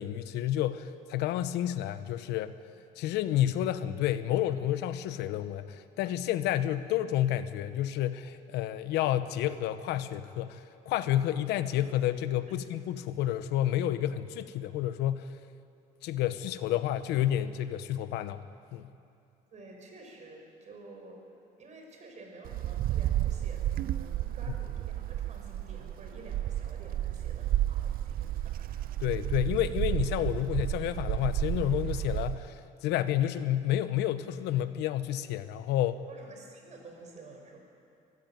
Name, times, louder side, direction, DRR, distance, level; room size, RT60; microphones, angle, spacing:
voice 1, 0.0-2.5 3.0-10.6 10.9-15.3 16.0-18.4 18.7-18.9 29.0-36.0, left 12 dB, 90° left, 12 dB, 1.0 m, -30 dB
voice 2, 19.5-21.2 21.6-29.0 36.1-37.6, right 2 dB, 45° right, 1 dB, 5.7 m, -50 dB
Wind, 22.5-32.5, right 13 dB, 60° right, 0.6 m, -32 dB
24.0 x 14.5 x 9.1 m, 2.6 s
cardioid pair, 110°, 17 cm